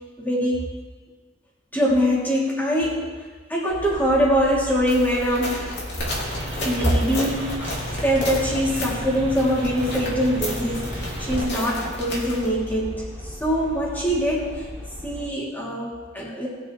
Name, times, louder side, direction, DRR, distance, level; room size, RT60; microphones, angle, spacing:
voice 1, 0.2-0.6 1.7-5.7 6.6-7.8 8.0-14.7 15.0-16.5, equal, 10° left, -6 dB, 2.9 m, -23 dB
sound 1, 3.7-15.3, left 1 dB, 15° right, 2.8 m, -38 dB
sound 2, 4.9-12.5, left 1 dB, 60° left, 2.7 m, -33 dB
sound 3, 6.0-11.4, equal, 35° right, 2.7 m, -33 dB
19.5 x 6.7 x 3.3 m, 1.4 s
head